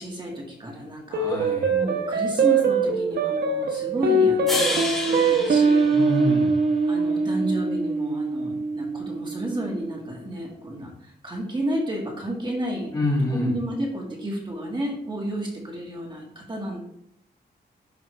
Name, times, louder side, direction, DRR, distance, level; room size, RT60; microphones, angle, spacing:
voice 1, 0.0-5.9 6.9-12.9 13.3-16.8, right 1 dB, 25° right, -1 dB, 1.8 m, -31 dB
voice 2, 1.1-1.8 5.9-6.5 12.9-13.5, left 2 dB, 20° left, -2 dB, 2.0 m, -26 dB
sound 1, 1.1-9.7, right 3 dB, 65° right, 1.1 m, -23 dB
sound 2, 4.5-6.8, left 2 dB, ahead, 3.0 m, -30 dB
11.5 x 5.5 x 3.3 m, 0.72 s
wide cardioid pair, 165°, 18 cm